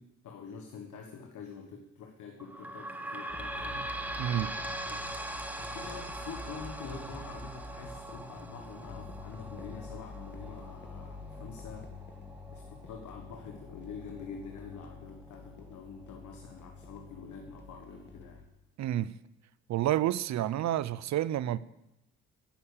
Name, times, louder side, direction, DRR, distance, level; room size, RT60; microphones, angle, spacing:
voice 1, 0.0-3.9 4.9-5.2 5.7-11.9 12.5-18.4, left 5 dB, 75° left, 1.4 m, -46 dB
sound 1, 2.4-15.6 16.1-16.2 16.5-16.6 17.4-17.5, right 1 dB, 5° right, 1.2 m, -42 dB
sound 2, 3.3-18.4, left 2 dB, 35° left, 2.1 m, -47 dB
voice 2, 4.2-4.5 18.8-19.2 19.7-21.6, right 12 dB, 65° right, 0.6 m, -29 dB
11.5 x 6.5 x 8.5 m
cardioid pair, 90°, 30 cm